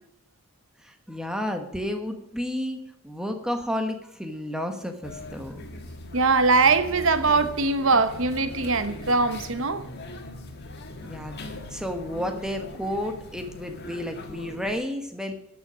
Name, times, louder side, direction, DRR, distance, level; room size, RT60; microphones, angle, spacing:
voice 1, 0.8-2.8 3.0-5.6 11.0-15.3, left 1 dB, 5° right, 1.2 m, -31 dB
sound 1, 5.0-14.8, left 1 dB, 45° left, 1.6 m, -40 dB
voice 2, 6.1-9.8, right 3 dB, 60° right, 0.9 m, -22 dB
11.5 x 7.0 x 6.1 m
head